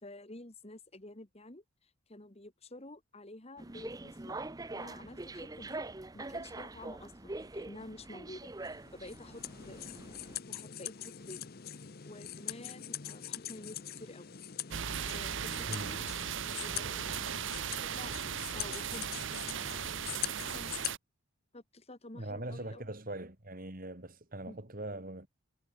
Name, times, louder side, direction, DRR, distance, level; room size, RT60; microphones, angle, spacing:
voice 1, 0.0-4.4 4.7-5.8 6.1-10.1 10.5-11.5 12.0-14.4 15.1-16.0 16.6-17.3 17.8-18.2 18.5-19.3 20.4-20.9 21.5-22.9 24.5-24.6, left 2 dB, 30° left, 1.7 m, -50 dB
sound 1, 3.6-10.4, right 2 dB, 15° right, 0.6 m, -44 dB
sound 2, 8.6-20.9, left 11 dB, 45° left, 0.7 m, -43 dB
sound 3, 14.7-21.0, right 8 dB, 60° right, 0.8 m, -37 dB
voice 2, 15.7-16.0 22.1-25.3, right 1 dB, 40° right, 2.5 m, -41 dB
head